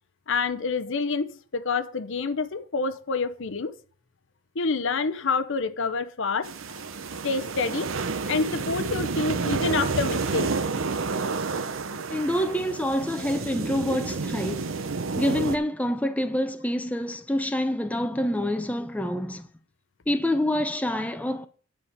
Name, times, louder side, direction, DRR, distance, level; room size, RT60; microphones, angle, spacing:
voice 1, 0.3-3.7 4.5-6.9 7.2-7.9 8.3-10.5, left 4 dB, 65° left, 0.8 m, -27 dB
sound 1, 6.4-15.6, right 4 dB, 70° right, 0.8 m, -30 dB
voice 2, 12.1-14.8 15.2-19.5 20.1-21.5, left 1 dB, 5° left, 0.8 m, -27 dB
10.0 x 5.0 x 7.2 m
head